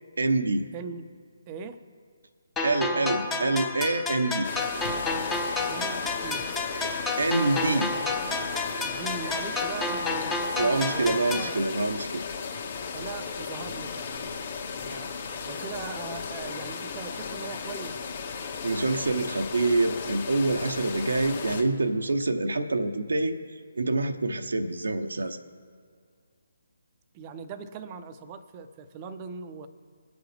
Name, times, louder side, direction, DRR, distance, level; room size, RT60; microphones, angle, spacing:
voice 1, 0.2-0.7 2.6-4.5 7.2-7.9 10.6-12.2 18.6-23.4 23.7-25.4, right 2 dB, 65° right, 7 dB, 0.8 m, -26 dB
voice 2, 0.7-1.2 1.5-1.8 5.7-6.5 8.8-11.7 12.9-14.4 14.7-15.1 15.4-18.1 27.1-29.7, right 5 dB, 25° right, 10 dB, 0.7 m, -40 dB
sound 1, 2.6-11.6, left 3 dB, 10° left, 0.9 m, -30 dB
sound 2, 4.4-21.6, left 5 dB, 40° left, 1.6 m, -36 dB
21.5 x 7.9 x 3.4 m, 2.1 s
figure-of-eight pair, 140°, 0 cm